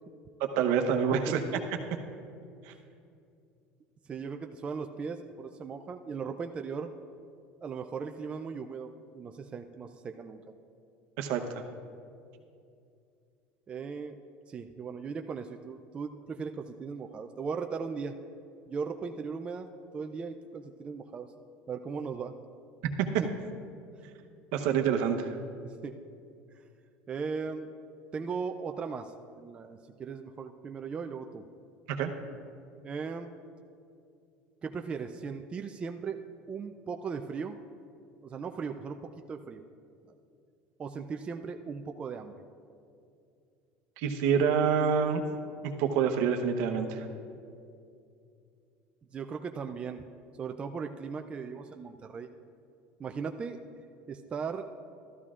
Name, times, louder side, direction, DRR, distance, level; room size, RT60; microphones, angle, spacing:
voice 1, 0.4-1.4 2.6-2.7 11.2-11.6 23.0-23.2 24.5-25.4 31.9-32.1 44.0-45.2 45.8-47.1, right 7 dB, 70° right, 5 dB, 0.9 m, -27 dB
voice 2, 4.1-6.9 7.6-10.4 13.7-14.2 14.5-18.2 18.7-21.3 21.7-22.3 25.6-25.9 27.1-27.7 28.1-31.4 32.8-33.3 34.6-36.2 36.5-37.6 38.2-39.6 40.8-42.3 49.1-50.0 50.4-52.3 53.0-53.6 54.1-54.7, right 5 dB, 25° right, 5 dB, 0.4 m, -38 dB
13.5 x 12.5 x 2.4 m, 2.5 s
supercardioid pair, 130°, 4 cm